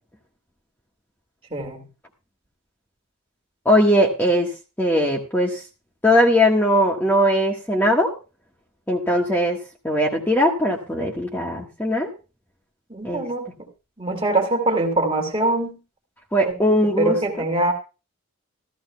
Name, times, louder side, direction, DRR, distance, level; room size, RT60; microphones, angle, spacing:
voice 1, 1.5-1.9 12.9-13.5 14.0-15.8 16.4-16.5 17.0-17.7, right 2 dB, 25° right, 2 dB, 2.3 m, -23 dB
voice 2, 3.6-4.5 4.8-5.6 6.0-8.1 8.9-9.6 9.8-12.1 13.0-13.3 16.3-17.4, equal, 10° left, -1 dB, 1.4 m, -20 dB
16.0 x 14.0 x 2.3 m, 0.31 s
head